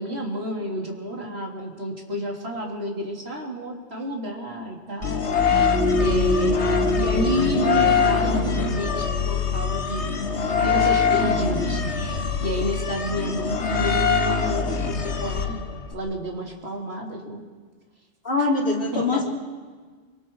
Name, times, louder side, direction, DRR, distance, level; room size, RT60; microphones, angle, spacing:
voice 1, 0.0-6.7 7.0-10.1 10.5-15.6 15.9-17.4 18.9-19.2, equal, 60° right, -1 dB, 3.6 m, -30 dB
sound 1, 5.0-15.9, left 6 dB, 70° left, 1.6 m, -23 dB
sound 2, 5.4-10.6 10.9-11.0, left 1 dB, 5° right, 7.0 m, -27 dB
voice 2, 18.2-19.3, left 3 dB, 50° left, -1 dB, 3.4 m, -23 dB
25.5 x 25.0 x 4.7 m, 1.5 s
omnidirectional pair, 1.2 m